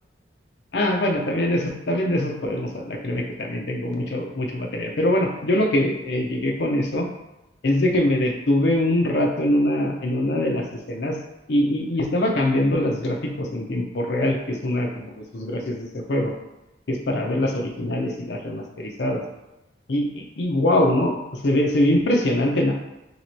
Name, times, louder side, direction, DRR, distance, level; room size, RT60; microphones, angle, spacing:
voice 1, 0.7-7.1 7.6-11.2 11.5-16.3 16.9-19.2 19.9-22.7, left 1 dB, 65° left, 1 dB, 0.6 m, -23 dB
2.9 x 2.9 x 4.2 m, 0.95 s
head